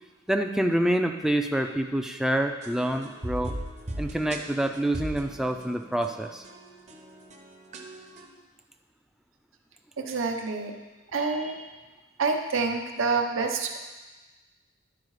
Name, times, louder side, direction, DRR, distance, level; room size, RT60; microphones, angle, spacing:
voice 1, 0.3-3.5 4.0-6.4, right 1 dB, ahead, 4 dB, 0.3 m, -27 dB
sound 1, 2.6-8.3, right 1 dB, 35° right, 0.7 m, -39 dB
voice 2, 10.0-10.8 11.1-11.7 12.2-13.8, right 4 dB, 75° right, 3 dB, 0.8 m, -27 dB
11.0 x 4.5 x 4.8 m, 1.2 s
head